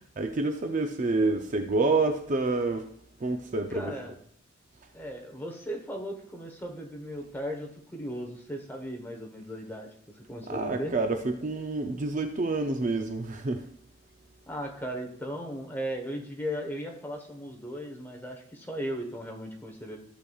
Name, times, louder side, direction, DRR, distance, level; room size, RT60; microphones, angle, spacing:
voice 1, 0.2-2.9 3.2-3.9 10.5-13.6, right 3 dB, 35° right, 5 dB, 0.5 m, -28 dB
voice 2, 3.7-4.1 4.9-10.9 14.5-20.0, equal, 10° left, 1 dB, 1.1 m, -37 dB
14.0 x 6.9 x 2.4 m, 0.62 s
head